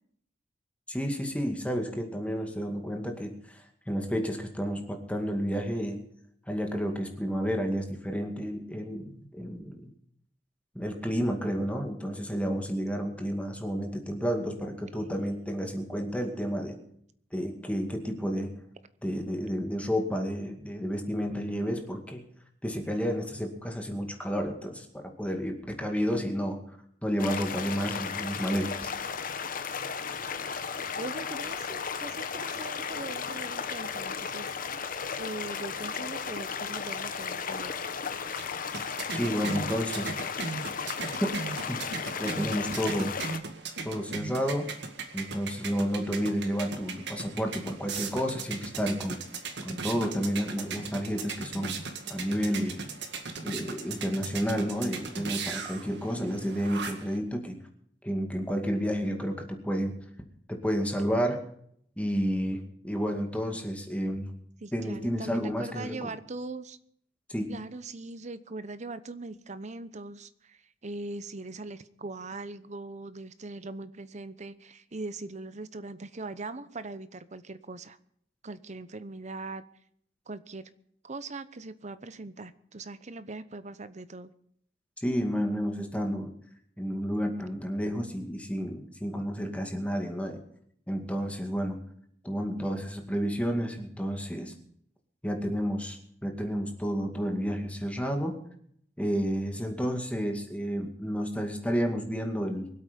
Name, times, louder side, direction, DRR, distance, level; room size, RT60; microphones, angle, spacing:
voice 1, 0.9-6.0 6.5-9.9 10.7-16.8 17.3-18.5 19.0-22.2 22.6-26.6 27.0-28.9 39.1-40.4 41.2-41.3 41.7-41.9 42.2-43.1 43.8-44.7 45.1-49.2 49.6-51.8 52.1-52.9 53.4-57.6 58.0-60.0 60.5-61.4 62.0-64.3 64.7-66.1 67.3-67.6 85.0-86.3 86.8-90.4 90.9-91.8 92.2-94.5 95.2-98.4 99.0-102.7, equal, 5° left, 3 dB, 2.2 m, -31 dB
voice 2, 14.3-14.6 14.9-15.4 30.7-34.5 35.2-37.7 64.6-66.8 67.5-78.0 78.4-79.6 80.3-80.6 81.0-84.3, right 3 dB, 40° right, 13 dB, 0.9 m, -41 dB
sound 1, 27.2-43.4, left 6 dB, 50° left, 1.0 m, -35 dB
sound 2, 38.0-57.2, right 4 dB, 65° right, 2.0 m, -38 dB
23.5 x 8.4 x 5.2 m, 0.66 s
head